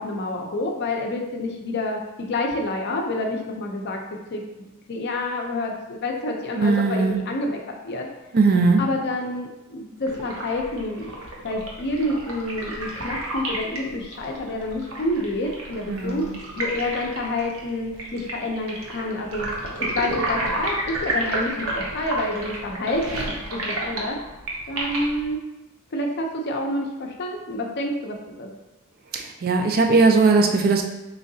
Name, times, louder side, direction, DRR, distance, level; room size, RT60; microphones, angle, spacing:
voice 1, 0.0-2.0 2.3-4.0 4.3-4.4 4.9-8.1 8.8-11.1 11.4-16.3 16.6-19.5 19.8-24.2 24.7-25.4 25.9-28.5, left 1 dB, 50° left, 2 dB, 0.5 m, -28 dB
voice 2, 6.6-7.2 8.3-8.8 15.9-16.4 29.1-30.8, right 3 dB, 45° right, 4 dB, 0.4 m, -19 dB
sound 1, 10.0-25.3, right 1 dB, 70° right, 0.7 m, -31 dB
3.6 x 3.1 x 2.7 m, 1.0 s
head